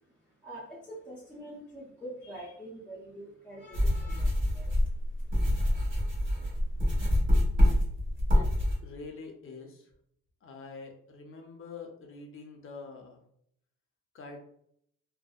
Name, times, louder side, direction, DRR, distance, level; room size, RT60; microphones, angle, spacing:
voice 1, 0.4-4.7, right 1 dB, 5° left, -6 dB, 0.6 m, -45 dB
sound 1, 3.7-8.8, left 1 dB, 40° right, 1.3 m, -26 dB
voice 2, 8.8-9.9 10.4-13.2 14.1-14.4, left 4 dB, 45° left, 3 dB, 0.6 m, -45 dB
2.6 x 2.0 x 2.3 m, 0.69 s
cardioid pair, 90°, 30 cm